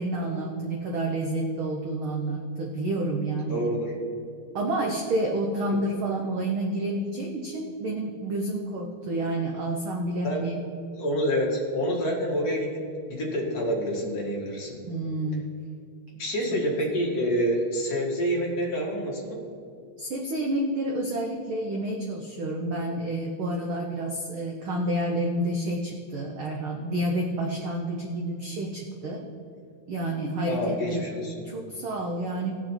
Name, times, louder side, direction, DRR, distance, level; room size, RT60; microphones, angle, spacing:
voice 1, 0.0-3.6 4.5-10.6 14.8-15.6 20.0-29.2 29.9-31.1 31.4-32.6, right 1 dB, 90° right, 1 dB, 1.1 m, -29 dB
voice 2, 3.5-4.0 5.7-5.8 10.2-10.4 10.9-14.8 16.2-19.4 30.4-31.4, equal, 35° left, -4 dB, 2.1 m, -27 dB
18.0 x 6.7 x 4.4 m, 2.5 s
omnidirectional pair, 3.6 m